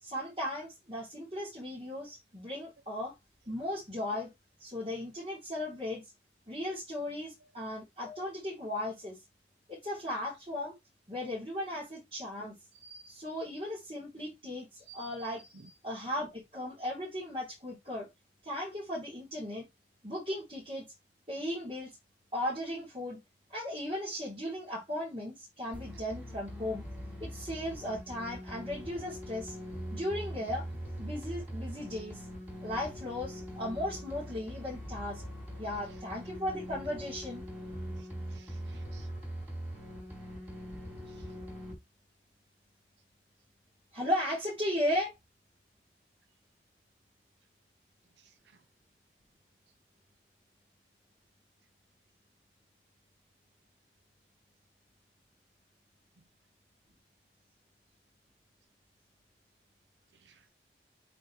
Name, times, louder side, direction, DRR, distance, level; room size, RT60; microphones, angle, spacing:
voice 1, 0.0-3.1 3.5-4.3 4.6-6.1 6.5-9.2 9.7-10.8 11.1-18.1 18.4-19.7 20.0-20.9 21.3-22.0 22.3-23.2 23.5-26.8 27.2-29.6 29.9-30.7 31.0-32.2 32.6-35.2 35.6-37.4 43.9-45.1, left 1 dB, 30° right, 3.1 m, -36 dB
sound 1, 25.7-41.7, equal, 10° right, 2.8 m, -42 dB
voice 2, 38.0-39.1 41.1-41.3 48.2-48.6 60.1-60.5, right 4 dB, 90° right, 0.8 m, -60 dB
8.3 x 3.7 x 3.2 m
head